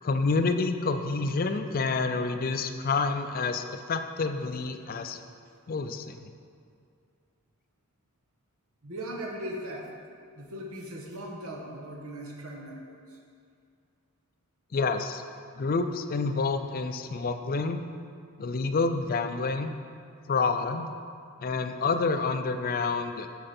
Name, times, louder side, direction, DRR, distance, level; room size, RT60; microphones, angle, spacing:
voice 1, 0.0-5.2 5.7-6.3 14.7-15.2 15.6-17.8 18.4-19.7 20.3-20.9 21.4-23.3, left 4 dB, 40° left, 8 dB, 0.4 m, -28 dB
voice 2, 8.8-9.9 10.3-13.0, right 1 dB, 80° right, 0 dB, 1.3 m, -38 dB
11.5 x 4.9 x 4.3 m, 2.3 s
head